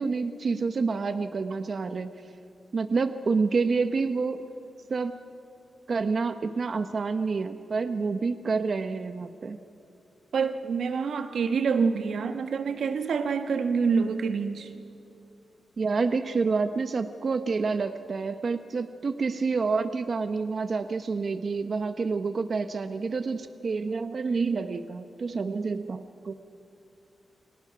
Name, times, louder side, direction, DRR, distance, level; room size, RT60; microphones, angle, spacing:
voice 1, 0.0-2.1 2.7-4.4 4.9-5.1 5.9-9.6 15.8-26.3, right 4 dB, 50° right, 0.9 m, -28 dB
voice 2, 10.3-14.7, right 5 dB, 85° right, 1.4 m, -26 dB
29.5 x 24.5 x 6.0 m
wide cardioid pair, 125°, 0 cm